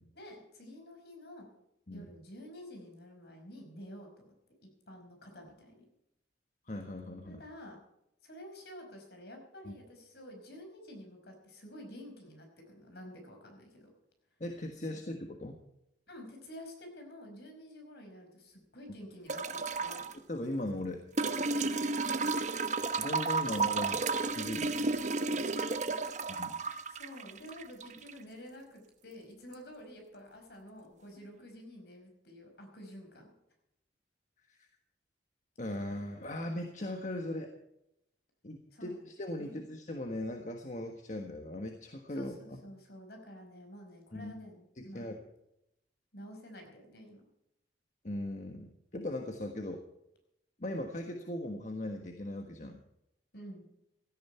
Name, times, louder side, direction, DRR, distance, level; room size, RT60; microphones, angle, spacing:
voice 1, 0.1-1.5 1.9-4.3 4.9-5.8 7.2-7.8 8.2-13.9 14.8-15.0 16.1-20.1 22.3-22.6 23.4-23.7 25.6-25.7 26.6-33.3 38.7-39.1 39.4-39.7 42.1-45.1 46.1-47.2 53.3-53.6, equal, 60° left, 4 dB, 5.1 m, -50 dB
voice 2, 6.7-7.4 9.6-9.7 14.4-15.6 20.3-21.0 23.0-24.9 26.4-26.6 34.5-34.7 35.6-37.5 38.4-42.6 44.1-44.3 44.8-45.3 48.0-49.8 50.6-52.8, left 1 dB, 45° left, 4 dB, 1.4 m, -39 dB
sound 1, 19.3-20.1 21.2-28.2 29.5-29.6, right 3 dB, 40° right, 0.9 m, -32 dB
16.5 x 14.0 x 4.5 m, 0.82 s
head